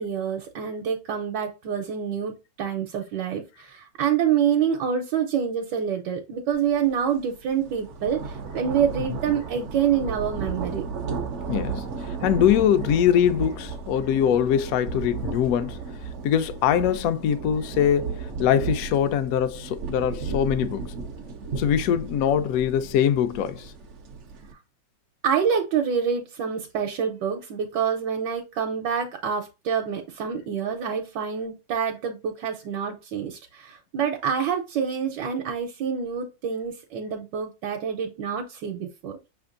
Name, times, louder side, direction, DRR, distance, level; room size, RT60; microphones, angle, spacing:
voice 1, 0.0-10.8 25.2-39.2, right 7 dB, 80° right, 1.3 m, -27 dB
sound 1, 6.7-6.9 7.3-24.5, right 5 dB, 60° right, 0.7 m, -34 dB
voice 2, 11.5-15.8 16.2-20.8 21.6-23.7, left 9 dB, 70° left, 0.8 m, -23 dB
5.7 x 3.4 x 2.5 m
omnidirectional pair, 1.9 m